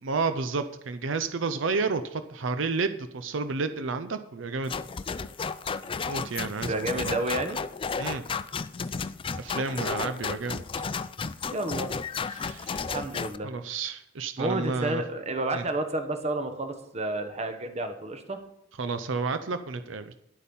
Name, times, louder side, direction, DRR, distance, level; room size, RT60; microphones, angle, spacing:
voice 1, 0.0-4.7 6.1-7.2 8.0-8.2 9.4-10.6 12.3-12.8 13.4-15.0 15.5-15.6 18.8-20.2, right 4 dB, 85° right, 10 dB, 0.6 m, -31 dB
sound 1, 4.7-13.4, left 5 dB, 25° left, 0.4 m, -33 dB
voice 2, 6.7-7.6 11.5-11.9 12.9-13.5 14.4-18.4, right 2 dB, 35° right, 7 dB, 1.2 m, -30 dB
10.5 x 8.5 x 5.4 m, 0.79 s
head